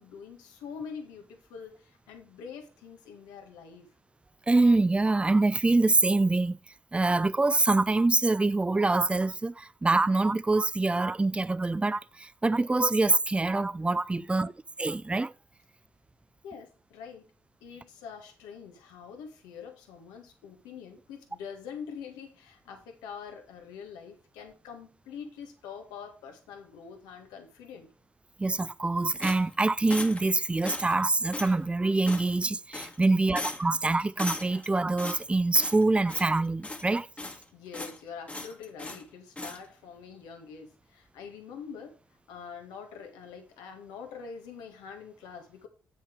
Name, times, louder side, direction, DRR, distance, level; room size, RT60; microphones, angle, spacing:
voice 1, 0.0-3.9 14.1-14.5 16.4-17.3 17.6-27.9 33.1-33.4 37.2-41.9 42.3-45.7, left 6 dB, 85° left, 1.7 m, -45 dB
voice 2, 4.5-6.6 6.9-14.5 14.8-15.3 28.4-37.1, right 2 dB, 15° right, 0.4 m, -25 dB
sound 1, 29.2-30.3 30.6-31.0 31.3-31.6 32.1-32.5 32.7-33.1 33.4-33.8 34.2-34.7 35.0-35.8 36.1-36.4 36.6-37.4 37.7-38.0 38.3-39.0 39.4-39.6, left 2 dB, 20° left, 1.4 m, -38 dB
8.0 x 6.0 x 4.6 m
supercardioid pair, 55°, 7 cm